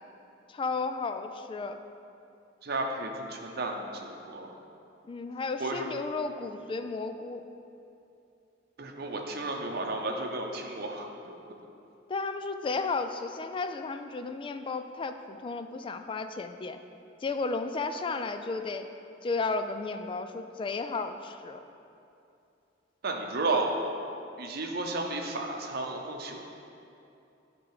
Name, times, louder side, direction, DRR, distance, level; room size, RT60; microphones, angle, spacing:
voice 1, 0.5-1.8 5.0-7.4 12.1-16.8 17.2-18.9 19.2-21.6, left 3 dB, 30° left, 8 dB, 0.3 m, -33 dB
voice 2, 2.6-4.5 5.6-5.9 8.8-11.3 23.0-23.9 24.4-26.4, right 2 dB, 55° right, 2 dB, 0.7 m, -33 dB
10.0 x 3.8 x 4.8 m, 2.7 s
head